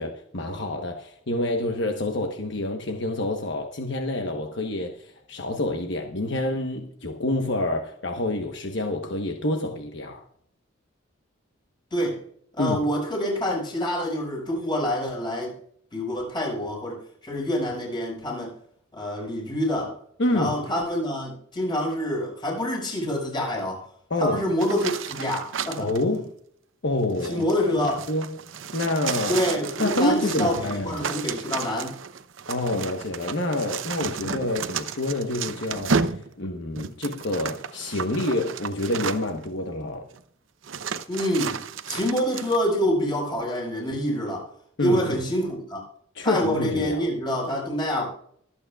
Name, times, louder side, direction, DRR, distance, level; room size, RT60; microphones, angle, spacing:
voice 1, 0.0-10.2 12.6-12.8 20.2-20.5 24.1-24.4 25.8-26.3 26.8-27.4 27.7-27.8 28.1-28.4 28.7-29.4 29.8-31.1 32.5-36.0 36.4-40.1 44.8-45.2 46.1-47.0, left 1 dB, 65° left, 1.1 m, -27 dB
voice 2, 11.9-12.2 12.6-15.6 15.9-18.5 18.9-20.0 20.3-23.8 24.2-25.9 27.2-28.0 29.3-32.0 41.1-44.4 44.8-45.8 46.2-48.1, equal, 25° left, 5.4 m, -26 dB
sound 1, 24.6-26.0 27.0-39.5 40.1-40.2 40.6-42.6, right 5 dB, 75° right, 0.7 m, -32 dB
23.5 x 8.6 x 2.4 m
head